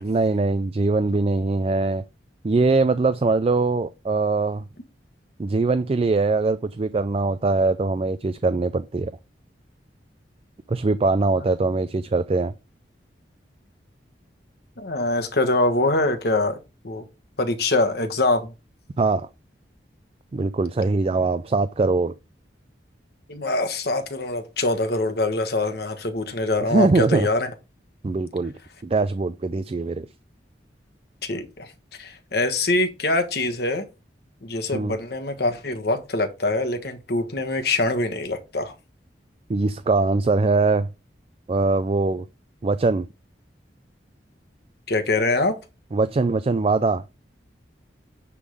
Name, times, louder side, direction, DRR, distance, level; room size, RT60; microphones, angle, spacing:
voice 1, 0.0-2.0 2.4-4.6 5.4-9.1 10.7-12.5 19.0-19.3 20.3-22.1 26.7-27.3 28.0-28.5 28.8-30.1 34.7-34.9 39.5-40.9 41.5-42.2 42.6-43.1 45.9-47.0, right 3 dB, 35° right, 0.4 m, -22 dB
voice 2, 14.8-16.6 16.8-17.0 17.4-18.5 23.3-27.5 31.2-31.7 32.0-33.8 34.4-38.7 44.9-45.6, left 2 dB, 60° left, 1.4 m, -24 dB
10.0 x 3.7 x 4.9 m
head